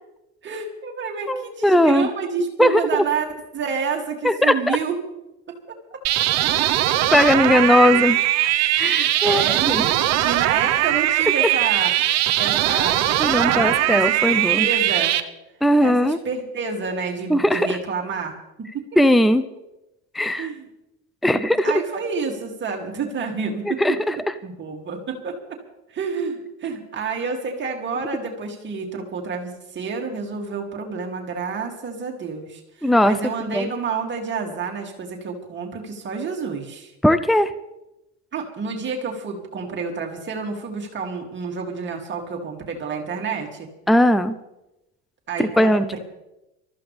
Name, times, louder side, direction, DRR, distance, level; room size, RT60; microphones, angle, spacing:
voice 1, 0.4-3.3 3.5-5.0 5.5-6.0 7.9-8.0 8.9-15.2 15.8-18.3 18.7-18.8 20.3-20.7 21.2-25.6 25.9-36.9 38.3-43.7 45.3-46.0, right 5 dB, 35° right, 1 dB, 2.8 m, -29 dB
voice 2, 1.3-2.1 2.6-2.8 4.2-4.8 7.1-8.2 8.8-9.4 9.7-9.8 11.4-11.5 13.2-14.7 15.6-16.2 17.3-17.7 19.0-19.4 20.1-20.5 21.2-21.7 23.7-24.3 32.8-33.1 33.5-33.6 37.0-37.5 43.9-44.3 45.4-45.8, left 1 dB, ahead, 12 dB, 0.6 m, -18 dB
sound 1, 6.0-15.2, right 13 dB, 55° right, 1.1 m, -20 dB
23.5 x 14.5 x 3.5 m, 0.92 s
supercardioid pair, 100°, 31 cm